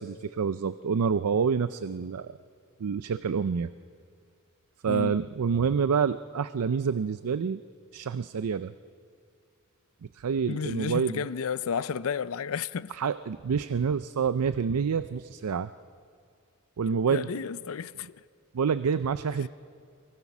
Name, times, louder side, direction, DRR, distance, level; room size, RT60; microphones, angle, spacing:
voice 1, 0.0-2.3 2.8-3.7 4.8-7.6 7.9-8.7 10.1-11.2 12.9-15.7 16.8-17.3 18.5-19.5, right 6 dB, 90° right, 0.5 m, -27 dB
voice 2, 4.9-5.2 10.5-12.9 17.1-18.1, left 6 dB, 65° left, 0.5 m, -32 dB
25.5 x 22.5 x 6.1 m
head